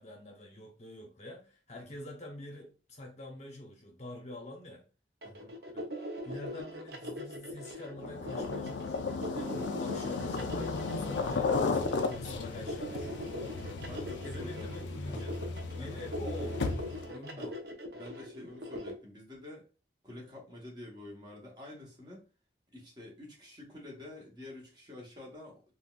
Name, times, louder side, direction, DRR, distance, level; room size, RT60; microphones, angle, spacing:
voice 1, 0.0-4.8 5.7-5.9 6.2-13.9 14.2-15.4 15.7-16.7 17.0-17.6, left 1 dB, 40° left, 0.7 m, -46 dB
voice 2, 5.2-5.5 13.9-14.7 15.0-15.3 15.8-16.0 17.4-17.5 17.9-19.6 20.0-22.3 22.7-25.6, left 1 dB, 25° right, 1.0 m, -48 dB
sound 1, 5.2-18.9, equal, 60° right, 0.6 m, -41 dB
sound 2, 8.0-17.1, left 4 dB, 90° left, 0.4 m, -35 dB
3.7 x 2.2 x 2.3 m
head